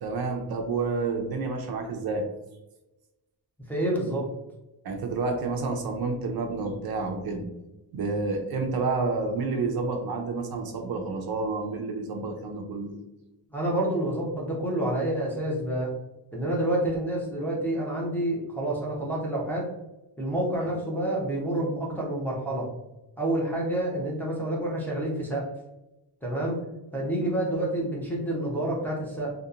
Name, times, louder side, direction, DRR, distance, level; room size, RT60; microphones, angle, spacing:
voice 1, 0.0-2.3 4.8-7.4 7.9-13.0 20.6-20.7, right 3 dB, 65° right, 3 dB, 0.5 m, -29 dB
voice 2, 3.7-4.3 13.5-15.9 16.3-19.7 20.2-22.7 23.2-25.5 26.2-26.6 26.9-29.3, right 1 dB, 5° left, -5 dB, 0.6 m, -28 dB
2.7 x 2.1 x 2.4 m, 0.96 s
wide cardioid pair, 135°, 41 cm